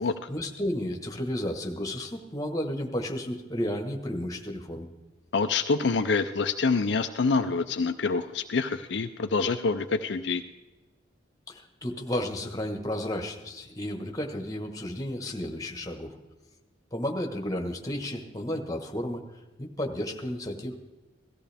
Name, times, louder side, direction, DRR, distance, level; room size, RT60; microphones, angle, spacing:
voice 1, 0.3-4.9 11.5-16.1 16.9-19.2 19.6-20.9, left 1 dB, 20° left, 3 dB, 1.3 m, -32 dB
voice 2, 5.3-10.4, left 4 dB, 65° left, 7 dB, 0.5 m, -26 dB
17.5 x 14.0 x 3.5 m, 1.1 s
head